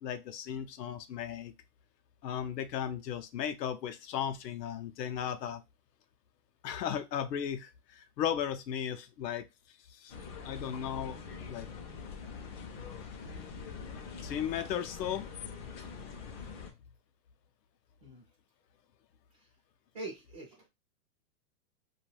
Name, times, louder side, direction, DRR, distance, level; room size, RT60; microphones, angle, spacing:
voice 1, 0.0-1.5 2.2-5.6 6.6-9.4 9.9-10.1 10.4-11.2 11.5-11.7 14.2-15.3, left 9 dB, 80° left, 0.6 m, -35 dB
sound 1, 10.1-16.7, left 6 dB, 40° left, 0.5 m, -44 dB
voice 2, 19.9-20.7, right 2 dB, 25° right, 0.3 m, -44 dB
2.3 x 2.2 x 3.2 m
hypercardioid pair, 155°, 49 cm